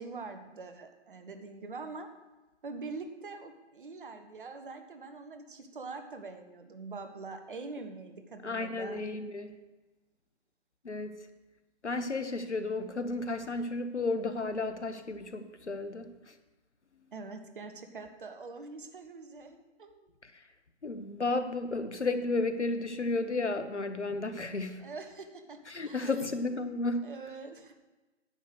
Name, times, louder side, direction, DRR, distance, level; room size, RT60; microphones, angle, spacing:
voice 1, 0.0-2.1 2.6-9.0 17.1-20.1 24.8-26.3 27.0-27.8, right 4 dB, 45° right, 7 dB, 1.2 m, -44 dB
voice 2, 8.4-9.6 10.8-11.2 11.8-16.3 20.2-20.4 20.8-24.8 25.7-27.0, left 3 dB, 80° left, 10 dB, 1.1 m, -33 dB
10.5 x 6.9 x 6.3 m, 1.1 s
figure-of-eight pair, 140°, 34 cm